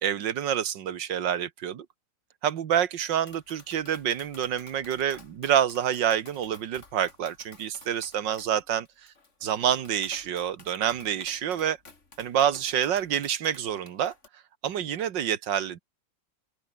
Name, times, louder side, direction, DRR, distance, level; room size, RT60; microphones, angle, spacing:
voice 1, 0.0-1.9 2.4-8.9 9.4-11.8 12.2-14.1 14.6-15.8, right 9 dB, 85° right, 2.0 m, -27 dB
Tap, 3.0-14.3, left 3 dB, 40° left, 3.2 m, -53 dB
open air
omnidirectional pair, 1.9 m